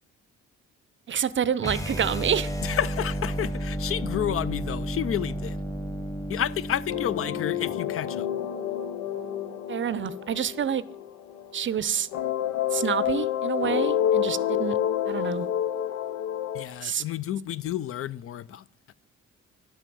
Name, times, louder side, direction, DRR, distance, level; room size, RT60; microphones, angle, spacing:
voice 1, 1.1-2.5 9.7-10.8 11.5-12.1 12.7-14.8 15.1-15.5 16.8-17.0, right 8 dB, 40° right, 0.6 m, -28 dB
sound 1, 1.6-7.8, right 1 dB, 10° left, 1.2 m, -32 dB
voice 2, 2.6-5.6 6.3-8.3 16.5-18.6, left 10 dB, 50° left, 0.4 m, -30 dB
sound 2, 6.9-11.7 12.1-16.7, left 10 dB, 90° left, 0.9 m, -28 dB
11.0 x 5.9 x 6.9 m
cardioid pair, 90°, 30 cm